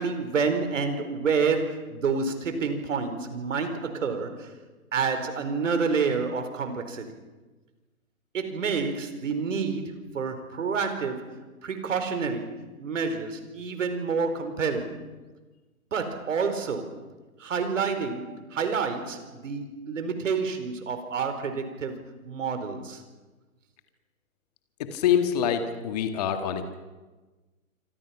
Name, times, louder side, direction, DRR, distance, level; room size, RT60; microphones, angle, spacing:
voice 1, 0.0-4.5 4.9-7.1 8.3-15.0 15.9-17.0 17.4-23.0, right 5 dB, 60° right, 8 dB, 4.6 m, -29 dB
voice 2, 24.9-26.6, left 9 dB, 30° left, 7 dB, 1.8 m, -25 dB
26.5 x 26.0 x 5.9 m, 1.2 s
hypercardioid pair, 160°, 42 cm